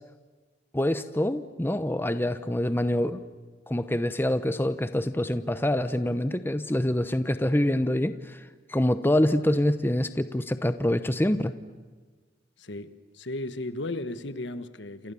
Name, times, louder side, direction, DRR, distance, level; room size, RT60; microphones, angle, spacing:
voice 1, 0.7-3.2 3.7-11.5, left 1 dB, 10° left, 11 dB, 0.8 m, -26 dB
voice 2, 12.6-15.1, left 2 dB, 75° left, 11 dB, 1.4 m, -35 dB
29.0 x 28.0 x 7.1 m, 1.4 s
head